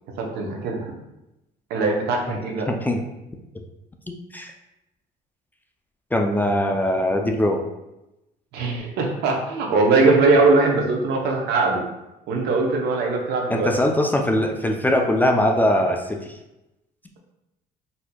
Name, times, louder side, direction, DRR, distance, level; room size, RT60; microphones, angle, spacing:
voice 1, 0.2-0.9 1.7-2.7 8.5-11.8 12.3-13.7, right 3 dB, 80° right, 1 dB, 0.7 m, -21 dB
voice 2, 2.7-3.0 4.1-4.5 6.1-7.6 13.5-16.4, left 1 dB, 10° left, 3 dB, 0.3 m, -21 dB
4.2 x 2.6 x 2.2 m, 0.94 s
cardioid pair, 110°, 17 cm